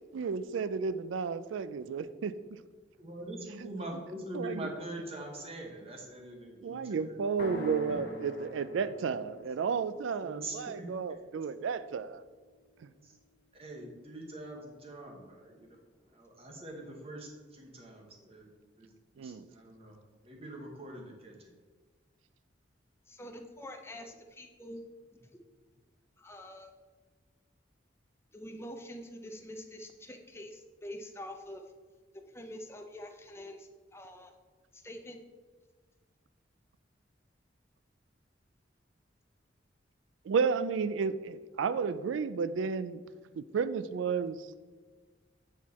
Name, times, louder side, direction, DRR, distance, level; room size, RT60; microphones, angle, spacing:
voice 1, 0.1-2.4 4.3-4.7 6.6-12.2 12.8-12.9 19.2-19.5 40.3-43.0 43.4-44.4, right 5 dB, 85° right, 14 dB, 0.4 m, -32 dB
voice 2, 3.0-7.2 7.9-8.0 10.1-10.9 13.0-13.1 13.5-15.7 16.1-18.5 18.8-20.0 20.2-21.5, right 1 dB, 30° right, 1 dB, 1.2 m, -44 dB
sound 1, 7.4-11.3, left 1 dB, 55° left, 1.4 m, -45 dB
voice 3, 23.1-24.8 25.1-25.3 26.2-26.7 28.3-31.6 32.3-34.3 34.7-35.2, left 1 dB, 15° left, 4 dB, 0.6 m, -46 dB
8.1 x 4.5 x 4.2 m, 1.4 s
head